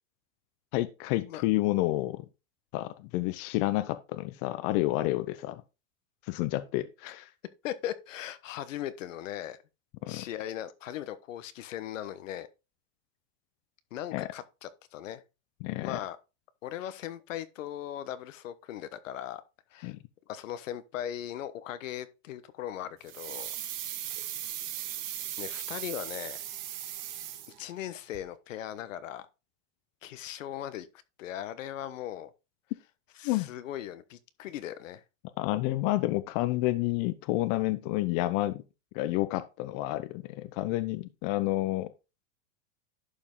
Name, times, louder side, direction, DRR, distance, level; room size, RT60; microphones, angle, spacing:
voice 1, 0.7-2.3 2.7-5.6 6.3-7.2 10.0-10.2 14.1-14.3 15.6-16.0 19.8-20.0 33.2-33.5 35.4-38.6 38.9-41.9, left 17 dB, 45° left, 0.9 m, -29 dB
voice 2, 7.6-9.6 10.1-12.5 13.9-15.2 15.8-16.2 16.6-19.4 19.7-19.9 20.3-23.5 24.8-25.1 25.4-26.4 27.6-29.3 30.0-30.9 31.2-32.3 33.2-35.0, left 11 dB, 85° left, 1.2 m, -38 dB
sound 1, 23.1-27.9 28.1-28.2, right 11 dB, 50° right, 1.9 m, -38 dB
11.5 x 5.3 x 3.8 m
supercardioid pair, 140°, 38 cm